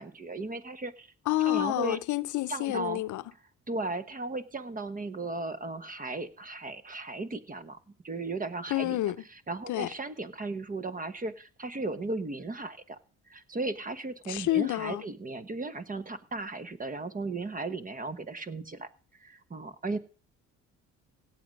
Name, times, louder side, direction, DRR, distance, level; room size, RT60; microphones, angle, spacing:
voice 1, 0.0-1.1 1.4-2.0 2.5-3.0 3.7-7.8 8.0-9.0 9.3-13.0 13.3-18.9 19.2-20.0, right 3 dB, 25° right, 1.2 m, -36 dB
voice 2, 1.3-3.2 8.7-9.2 9.7-9.9 14.3-15.0, left 15 dB, 80° left, 0.7 m, -28 dB
17.0 x 7.7 x 5.3 m
cardioid pair, 90°, 30 cm